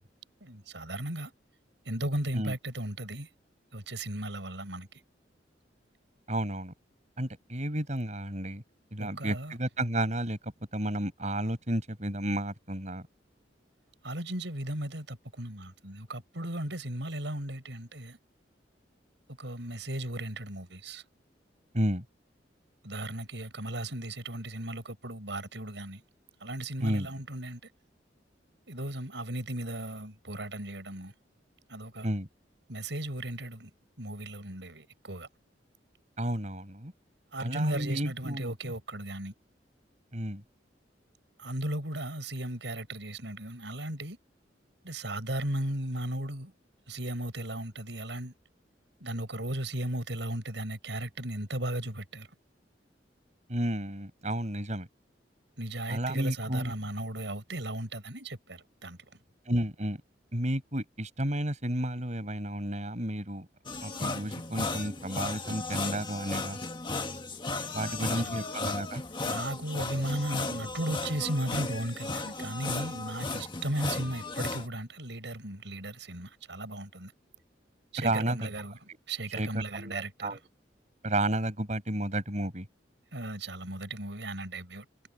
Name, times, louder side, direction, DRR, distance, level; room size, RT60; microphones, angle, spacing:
voice 1, 0.4-1.3 1.8-3.3 3.7-5.0 9.0-9.5 14.0-18.2 19.4-21.0 22.8-26.0 26.4-27.6 28.7-31.1 31.7-32.1 32.7-33.7 34.0-35.3 37.3-39.3 41.4-44.2 44.8-46.5 46.9-48.3 49.0-52.3 55.6-59.1 67.8-68.3 69.2-77.1 77.9-80.4 83.1-84.9, right 1 dB, 80° right, 6.0 m, -36 dB
voice 2, 6.3-6.7 7.2-8.6 8.9-13.1 21.7-22.0 26.8-27.1 32.0-32.3 36.2-36.9 37.4-38.5 40.1-40.4 53.5-54.9 55.9-56.7 59.5-60.0 60.3-63.5 63.8-66.6 67.7-69.0 78.0-78.5 79.4-80.4 81.0-82.7, right 1 dB, 40° right, 5.9 m, -32 dB
sound 1, 63.7-74.7, left 3 dB, 25° left, 1.7 m, -35 dB
head